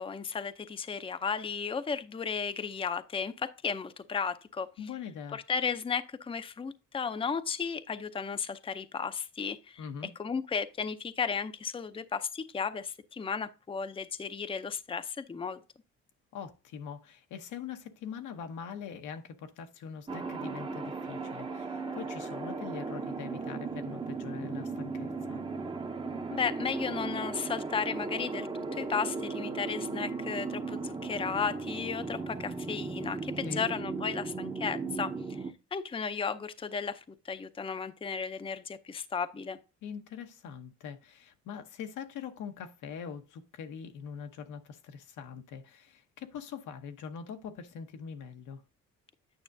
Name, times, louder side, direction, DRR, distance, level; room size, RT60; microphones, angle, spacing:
voice 1, 0.0-15.6 26.3-35.1 35.7-39.6, left 6 dB, 20° left, 0.5 m, -34 dB
voice 2, 4.8-5.4 9.8-10.1 16.3-25.4 33.4-33.7 39.8-48.6, left 7 dB, 80° left, 1.0 m, -43 dB
sound 1, 20.1-35.5, right 4 dB, 15° right, 0.7 m, -37 dB
9.2 x 6.1 x 2.7 m
cardioid pair, 90°, 30 cm